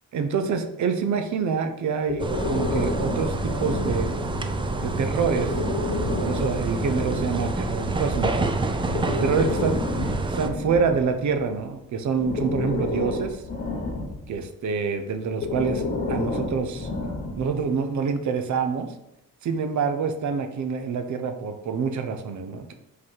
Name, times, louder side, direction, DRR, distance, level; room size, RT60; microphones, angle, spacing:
voice 1, 0.1-4.1 4.8-5.5 6.2-8.5 9.2-9.8 10.3-13.4 14.3-15.8 16.1-16.9 17.4-18.9 19.4-22.7, right 5 dB, 55° right, 7 dB, 0.8 m, -26 dB
Breathing, 2.1-4.5 5.3-7.6 8.7-11.6 12.2-14.4 15.3-17.6, left 2 dB, 25° left, 1.0 m, -30 dB
sound 1, 2.2-10.5, right 3 dB, 15° right, 0.3 m, -28 dB
sound 2, 2.3-10.3, left 2 dB, 50° left, 1.3 m, -35 dB
5.3 x 4.1 x 5.6 m, 0.83 s
cardioid pair, 175°, 34 cm